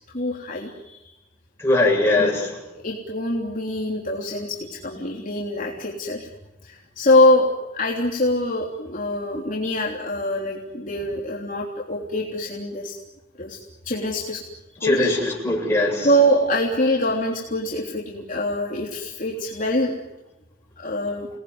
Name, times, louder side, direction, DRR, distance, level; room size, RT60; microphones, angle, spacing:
voice 1, 0.1-1.1 2.2-2.3 2.7-6.3 6.6-12.9 13.4-13.6 13.8-14.4 14.8-15.1 16.0-19.9 20.8-21.3, left 1 dB, 45° left, -2 dB, 3.3 m, -24 dB
voice 2, 1.6-2.6 14.8-16.1, left 2 dB, 15° left, -2 dB, 7.8 m, -20 dB
29.0 x 20.0 x 9.7 m, 1.0 s
head